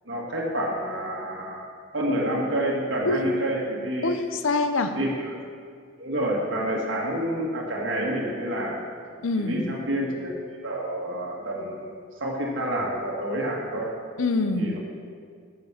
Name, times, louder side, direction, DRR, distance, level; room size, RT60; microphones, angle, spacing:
voice 1, 0.0-4.1 4.9-5.3 6.0-8.8 9.4-10.3 10.6-11.9 12.2-13.9 14.6-14.8, right 1 dB, 60° right, -3 dB, 1.6 m, -28 dB
voice 2, 4.0-4.9 9.2-9.7 14.2-14.8, left 2 dB, 70° left, 8 dB, 0.7 m, -25 dB
9.4 x 7.4 x 5.8 m, 2.1 s
head